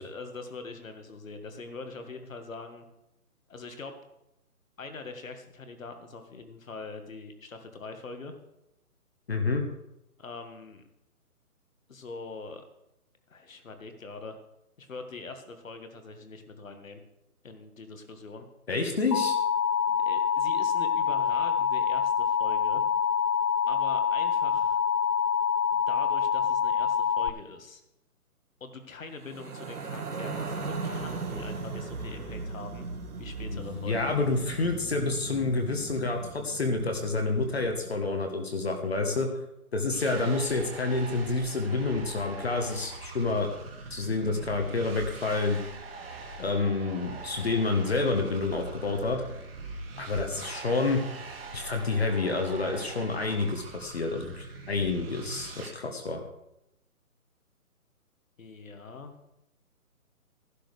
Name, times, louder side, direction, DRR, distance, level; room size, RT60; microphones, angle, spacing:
voice 1, 0.0-2.9 3.5-3.9 4.8-8.3 10.2-10.8 11.9-12.6 13.3-14.4 14.8-17.0 17.4-18.4 19.9-22.8 23.7-24.8 25.7-27.8 28.6-32.8 33.2-34.1 58.4-59.1, left 3 dB, 60° left, 6 dB, 1.7 m, -43 dB
voice 2, 9.3-9.6 18.7-19.3 33.5-39.3 39.7-43.5 43.9-45.6 46.4-49.2 50.0-51.0 51.5-56.2, left 3 dB, 45° left, 4 dB, 1.3 m, -28 dB
Alarm, 19.1-27.3, left 7 dB, 90° left, 0.7 m, -26 dB
sound 1, 29.2-38.5, right 3 dB, 85° right, 2.1 m, -38 dB
sound 2, 39.9-55.7, right 3 dB, 40° right, 1.8 m, -42 dB
14.0 x 11.5 x 3.3 m, 0.87 s
hypercardioid pair, 175°, 45 cm